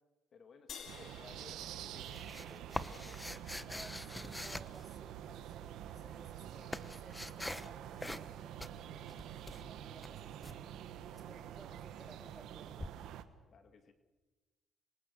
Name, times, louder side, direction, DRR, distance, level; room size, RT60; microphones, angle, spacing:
voice 1, 0.3-3.2 13.5-13.9, left 5 dB, 55° left, 8 dB, 2.2 m, -58 dB
sound 1, 0.7-3.3, left 7 dB, 70° left, 3.0 m, -53 dB
sound 2, 0.9-13.2, right 11 dB, 85° right, 1.4 m, -47 dB
sound 3, 1.6-5.4 6.2-7.7 8.0-8.3 8.6-10.6 12.8-12.9, left 1 dB, 10° left, 1.0 m, -44 dB
voice 2, 3.7-12.9, right 2 dB, 20° right, 3 dB, 4.1 m, -59 dB
27.0 x 23.5 x 6.7 m, 1.2 s
cardioid pair, 90°, 0 cm